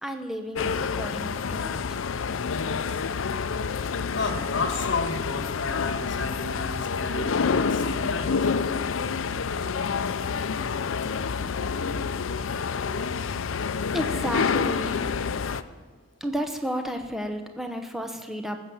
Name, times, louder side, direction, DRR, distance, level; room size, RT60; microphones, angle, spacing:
voice 1, 0.0-2.0 13.9-15.0 16.2-18.6, equal, ahead, 5 dB, 0.9 m, -32 dB
sound 1, 0.5-15.6, left 5 dB, 85° left, 0.5 m, -28 dB
voice 2, 2.2-3.6 3.8-8.4 10.6-11.8 12.8-13.3 15.6-15.7, left 3 dB, 65° left, 6 dB, 1.5 m, -34 dB
19.0 x 7.8 x 7.0 m, 1.4 s
head